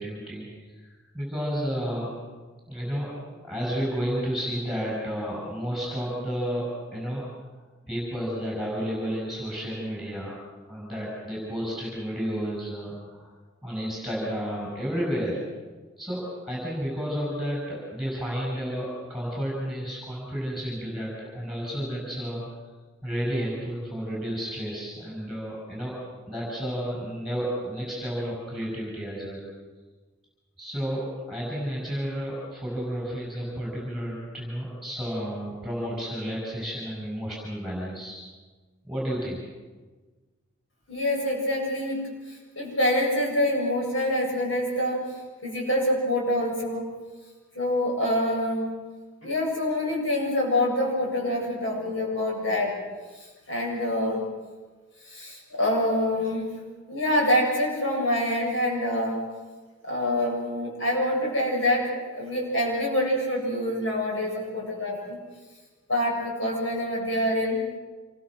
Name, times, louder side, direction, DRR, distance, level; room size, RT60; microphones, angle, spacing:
voice 1, 0.0-2.1 2.7-7.2 7.9-10.4 10.7-13.2 13.6-15.4 16.0-22.4 23.0-25.9 26.3-29.4 30.6-38.2 38.8-39.4, equal, ahead, -4 dB, 6.6 m, -31 dB
voice 2, 40.9-42.0 42.3-45.0 45.4-46.9 47.5-48.7 49.2-52.7 53.5-54.2 55.0-56.5 56.9-59.2 59.8-65.2 65.9-67.6, left 1 dB, 70° left, -2 dB, 7.6 m, -26 dB
27.0 x 22.5 x 6.3 m, 1.3 s
head